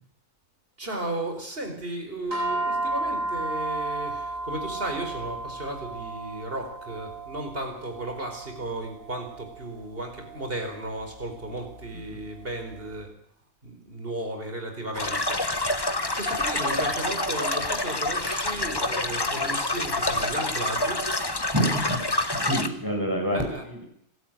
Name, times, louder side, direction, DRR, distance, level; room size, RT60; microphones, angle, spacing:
voice 1, 0.8-13.1 13.6-21.0 23.3-23.6, right 1 dB, 40° right, 4 dB, 4.8 m, -35 dB
sound 1, 2.3-12.8, right 2 dB, 70° right, 7.3 m, -34 dB
sound 2, 14.9-22.7, left 2 dB, 20° left, 1.2 m, -27 dB
voice 2, 21.5-22.0 22.3-23.8, equal, 15° right, 1 dB, 5.3 m, -27 dB
27.0 x 13.0 x 9.2 m, 0.73 s
omnidirectional pair, 1.4 m